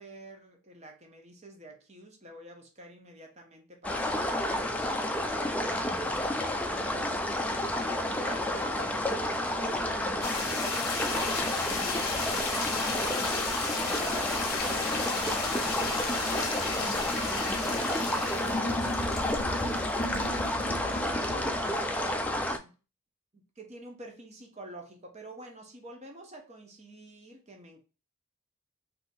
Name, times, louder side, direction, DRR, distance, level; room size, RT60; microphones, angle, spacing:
voice 1, 0.0-6.3 6.7-17.7 18.3-19.4 20.9-22.7 23.3-27.8, right 1 dB, 30° right, 0.8 m, -49 dB
sound 1, 3.8-22.6, left 1 dB, 5° left, 0.3 m, -30 dB
sound 2, 10.2-21.6, left 3 dB, 45° left, 1.0 m, -34 dB
Stream, 11.1-18.3, right 4 dB, 75° right, 0.5 m, -44 dB
3.8 x 2.8 x 2.6 m
head